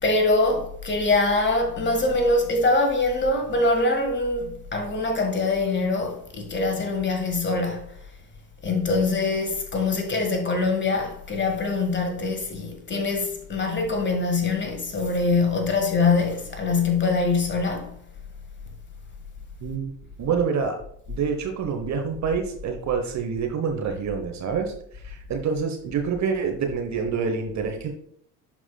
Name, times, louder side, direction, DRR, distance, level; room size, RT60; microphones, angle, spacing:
voice 1, 0.0-7.9 8.6-17.9, left 3 dB, 20° left, 1.5 m, -23 dB
voice 2, 19.6-20.8 21.1-24.7 25.0-27.9, right 6 dB, 35° right, 1.1 m, -27 dB
11.0 x 4.8 x 2.3 m
figure-of-eight pair, 65°, 49 cm